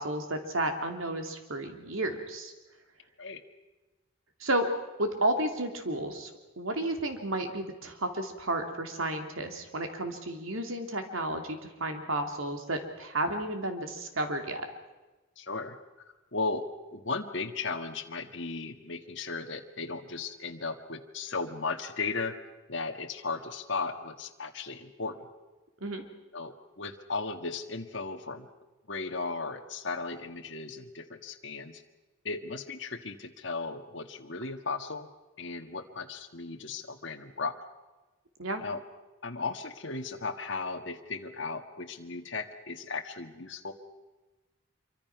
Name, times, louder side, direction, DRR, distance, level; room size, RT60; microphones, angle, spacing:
voice 1, 0.0-2.5 4.4-4.7 5.0-6.3 6.6-14.7 25.8-26.0 38.4-38.6, right 1 dB, 75° right, 5 dB, 2.9 m, -32 dB
voice 2, 15.4-15.8 16.3-22.4 22.7-25.3 26.3-28.5 28.9-31.8 32.2-35.1 35.4-37.6 38.6-38.8 39.2-43.7, left 4 dB, 55° left, 3 dB, 1.6 m, -36 dB
26.0 x 24.0 x 6.0 m, 1.2 s
head